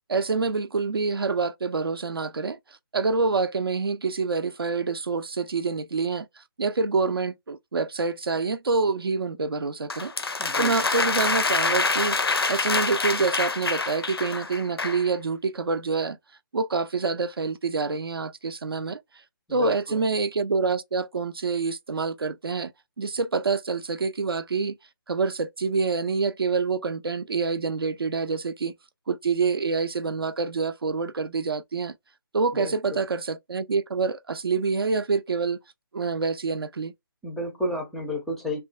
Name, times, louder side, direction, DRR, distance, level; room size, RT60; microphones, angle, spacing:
voice 1, 0.1-2.6 2.9-6.3 6.6-10.1 10.6-12.2 12.5-16.2 16.5-19.0 19.5-22.7 23.0-24.8 25.1-28.7 29.1-31.9 32.3-35.6 35.9-36.9, right 4 dB, 75° right, 0.5 m, -26 dB
sound 1, 9.9-15.1, left 4 dB, 85° left, 0.5 m, -26 dB
voice 2, 10.4-10.8 19.5-20.0 32.5-33.0 37.2-38.6, left 1 dB, ahead, 0.4 m, -32 dB
3.1 x 2.2 x 2.2 m
figure-of-eight pair, 145°, 12 cm